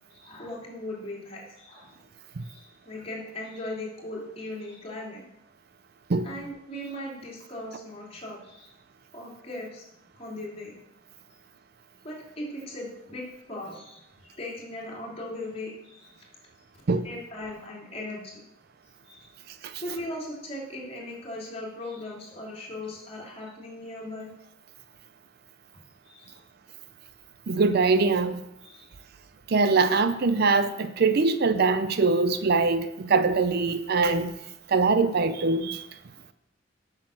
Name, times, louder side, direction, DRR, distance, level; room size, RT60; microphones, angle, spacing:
voice 1, 0.1-2.0 2.4-5.2 6.2-8.8 9.1-9.9 10.1-10.7 12.0-16.2 17.0-18.4 19.1-19.3 19.7-24.3 26.1-26.4 28.6-28.9 31.0-31.3, left 1 dB, 30° left, -3 dB, 2.8 m, -38 dB
voice 2, 27.5-28.4 29.5-34.3 34.7-35.9, right 4 dB, 55° right, 11 dB, 0.5 m, -23 dB
8.1 x 6.3 x 6.3 m, 0.84 s
head